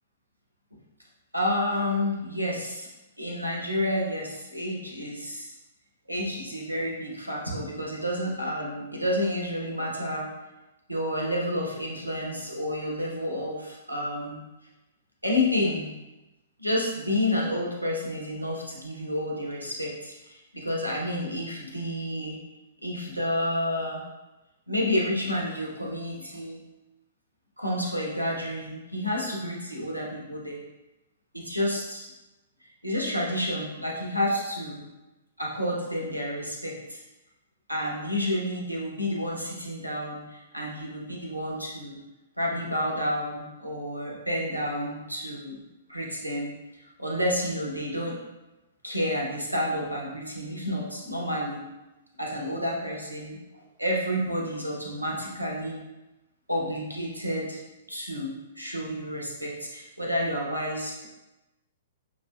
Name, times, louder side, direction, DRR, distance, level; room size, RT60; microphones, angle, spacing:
voice 1, 1.3-2.9 3.2-5.5 6.1-10.3 10.9-14.4 15.2-15.9 16.6-22.4 22.8-24.0 24.7-26.6 27.6-30.6 31.3-32.1 32.8-34.9 35.4-37.0 37.7-42.0 42.4-45.6 45.9-46.6 47.0-48.2 48.8-51.6 52.2-53.4 53.8-55.8 56.5-57.6 57.9-61.1, left 1 dB, 90° right, -2 dB, 0.8 m, -30 dB
6.1 x 2.5 x 2.2 m, 1.0 s
figure-of-eight pair, 115°, 0 cm